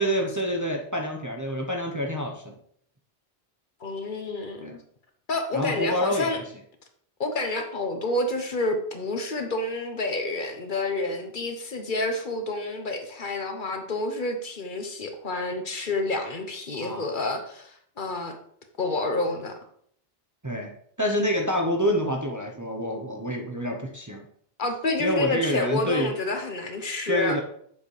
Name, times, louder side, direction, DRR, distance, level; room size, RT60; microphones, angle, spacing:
voice 1, 0.0-2.5 4.6-4.7 5.5-6.4 16.7-17.0 20.4-20.7 21.0-24.3 25.0-26.1 27.1-27.4, equal, 20° right, 1 dB, 0.8 m, -27 dB
voice 2, 3.8-4.8 5.3-6.4 7.2-18.4 18.8-19.6 24.6-27.4, left 2 dB, 55° left, 5 dB, 1.1 m, -29 dB
7.9 x 6.7 x 3.3 m, 0.64 s
omnidirectional pair, 1.0 m